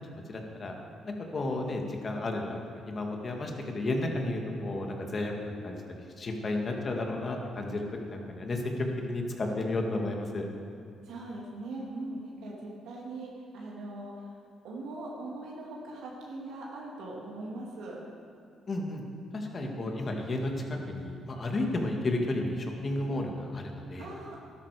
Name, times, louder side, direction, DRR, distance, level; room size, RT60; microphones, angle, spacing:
voice 1, 0.1-0.7 1.0-2.6 2.9-5.8 6.2-10.4 18.7-19.0 19.3-24.1, left 2 dB, 40° left, 2 dB, 1.9 m, -32 dB
voice 2, 11.1-14.3 14.6-18.0 19.6-19.9 24.0-24.4, right 2 dB, 85° right, -3 dB, 2.2 m, -41 dB
12.5 x 12.5 x 4.9 m, 2.3 s
cardioid pair, 90°, 0 cm